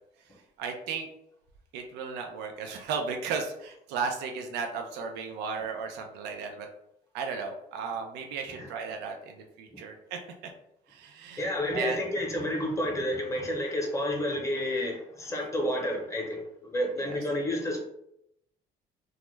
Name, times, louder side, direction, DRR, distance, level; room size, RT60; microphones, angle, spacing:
voice 1, 0.6-1.1 1.7-6.7 7.1-10.2 10.9-11.4 11.7-12.0 17.0-17.2, right 5 dB, 90° right, 4 dB, 0.4 m, -35 dB
voice 2, 11.4-17.8, left 1 dB, 15° left, 0 dB, 0.7 m, -30 dB
2.3 x 2.1 x 3.0 m, 0.78 s
cardioid pair, 110°, 17 cm